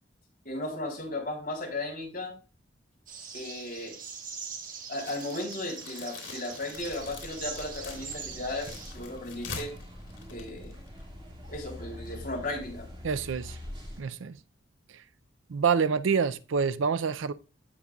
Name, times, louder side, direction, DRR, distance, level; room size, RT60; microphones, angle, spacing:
voice 1, 0.5-2.3 3.3-4.0 4.9-9.7 10.3-10.8 11.5-12.9, left 2 dB, 45° left, 3.5 m, -35 dB
sound 1, 3.1-8.9, right 6 dB, 45° right, 1.3 m, -42 dB
sound 2, 5.0-11.1, left 5 dB, 75° left, 3.0 m, -45 dB
sound 3, 6.7-14.0, left 1 dB, 25° right, 2.3 m, -44 dB
voice 2, 13.0-13.6 14.0-14.4 15.5-17.3, right 6 dB, 90° right, 0.5 m, -27 dB
15.5 x 5.3 x 2.3 m
head